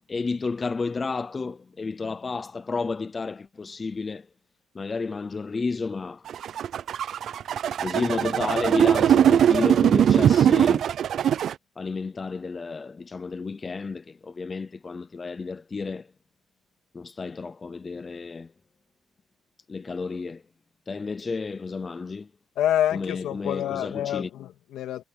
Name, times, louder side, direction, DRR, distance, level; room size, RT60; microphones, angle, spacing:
voice 1, 0.0-4.3 4.7-6.3 7.8-10.8 11.8-16.1 16.9-18.5 19.7-20.4 20.9-22.3 22.9-24.3, left 4 dB, 25° left, 0.6 m, -31 dB
sound 1, 6.3-11.5, right 9 dB, 55° right, 0.4 m, -20 dB
voice 2, 22.6-25.0, left 11 dB, 75° left, 2.5 m, -27 dB
cardioid pair, 125°, 0 cm